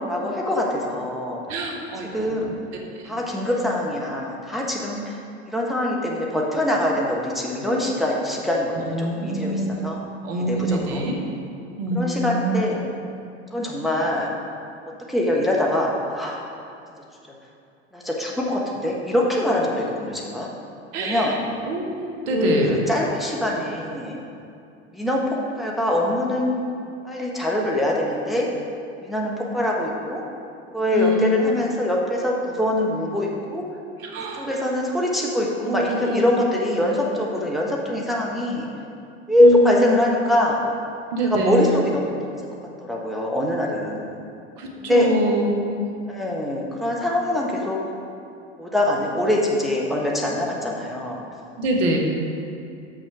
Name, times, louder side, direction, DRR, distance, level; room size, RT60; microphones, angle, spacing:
voice 1, 0.0-1.4 2.1-2.5 3.0-5.2 5.4-10.0 10.3-11.0 11.9-12.8 13.5-14.3 15.1-16.4 17.9-20.5 21.0-21.3 22.3-24.2 24.9-26.6 27.0-28.5 29.0-30.2 30.7-33.6 34.4-38.7 39.3-40.6 41.3-42.1 42.8-44.1 44.8-45.1 46.1-47.8 48.6-51.2, left 1 dB, ahead, -3 dB, 1.2 m, -23 dB
voice 2, 1.5-2.6 2.9-3.2 8.8-9.7 10.2-11.2 11.8-12.6 20.9-21.4 21.7-22.8 30.9-31.4 34.0-34.5 35.6-36.3 39.4-39.9 41.1-41.8 44.6-45.9 51.6-52.0, right 1 dB, 60° right, 1 dB, 1.5 m, -25 dB
6.4 x 6.3 x 6.0 m, 2.6 s
hypercardioid pair, 80°, 34 cm